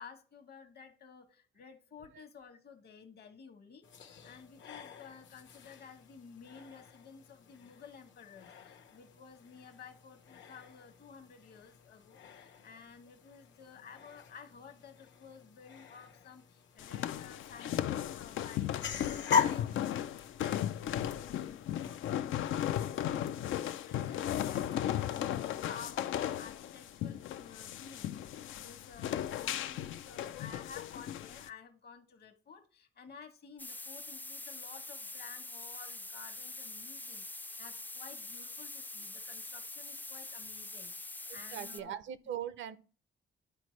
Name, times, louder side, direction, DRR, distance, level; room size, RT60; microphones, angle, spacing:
voice 1, 0.0-42.0, left 6 dB, 55° left, 1.2 m, -53 dB
sound 1, 3.8-22.0, left 6 dB, 70° left, 1.0 m, -41 dB
sound 2, 16.8-31.5, left 11 dB, 90° left, 0.5 m, -36 dB
sound 3, 33.6-41.8, left 2 dB, 10° left, 0.3 m, -44 dB
voice 2, 41.5-42.8, right 10 dB, 75° right, 0.6 m, -40 dB
10.5 x 4.3 x 3.1 m
cardioid pair, 120°, 20 cm